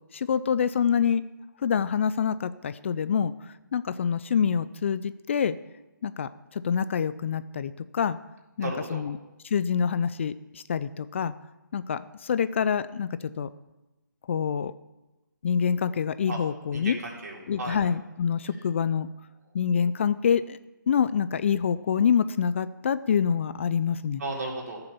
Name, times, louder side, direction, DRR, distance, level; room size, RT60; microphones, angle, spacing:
voice 1, 0.1-1.2 1.6-5.5 6.0-8.2 8.6-9.2 9.4-11.3 11.7-13.1 13.4-13.5 14.3-14.7 15.4-17.0 17.5-19.1 19.5-20.6 20.9-24.2, left 7 dB, 35° left, 14 dB, 0.4 m, -26 dB
voice 2, 8.6-9.0 16.3-16.4 16.7-17.8 24.2-24.8, right 2 dB, 50° right, -2 dB, 4.1 m, -34 dB
14.5 x 6.8 x 7.0 m, 1.0 s
figure-of-eight pair, 150°, 11 cm